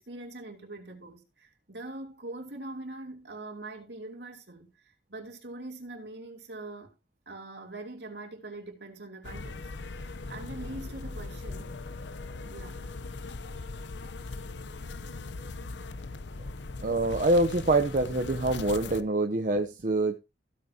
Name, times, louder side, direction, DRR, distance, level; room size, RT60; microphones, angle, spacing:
voice 1, 0.0-6.9 7.3-9.7 10.0-11.7 12.5-12.8, right 2 dB, 70° right, 2.9 m, -43 dB
sound 1, 9.2-19.0, left 3 dB, 85° left, 0.8 m, -39 dB
voice 2, 16.8-20.2, right 2 dB, 45° right, 0.8 m, -25 dB
16.0 x 8.4 x 2.8 m
head